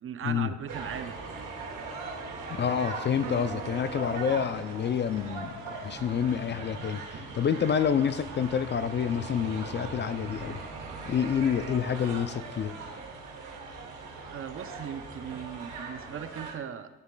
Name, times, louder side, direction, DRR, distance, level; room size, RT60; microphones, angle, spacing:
voice 1, 0.0-1.2 14.3-16.9, right 8 dB, 45° right, 11 dB, 0.6 m, -38 dB
sound 1, 0.7-16.5, right 3 dB, 85° right, 1.8 m, -40 dB
voice 2, 2.5-5.5 5.8-10.6 11.1-12.8, left 7 dB, 35° left, 12 dB, 0.4 m, -28 dB
Piano, 3.2-9.9, right 7 dB, 70° right, 0.9 m, -51 dB
13.0 x 7.1 x 2.2 m, 1.2 s
cardioid pair, 90°, 30 cm